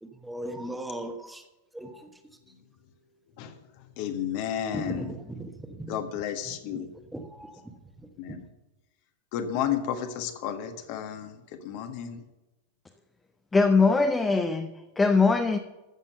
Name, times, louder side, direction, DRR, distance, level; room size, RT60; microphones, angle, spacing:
voice 1, 0.0-1.4 1.7-2.1 4.7-6.0 6.5-6.6 7.1-7.6, right 1 dB, 5° right, 1.4 m, -37 dB
voice 2, 4.0-5.1 5.9-6.9 8.2-8.4 9.3-12.2, left 9 dB, 45° left, 1.5 m, -32 dB
voice 3, 13.5-15.6, left 4 dB, 10° left, 0.8 m, -22 dB
13.5 x 7.4 x 6.7 m
figure-of-eight pair, 90°, 0 cm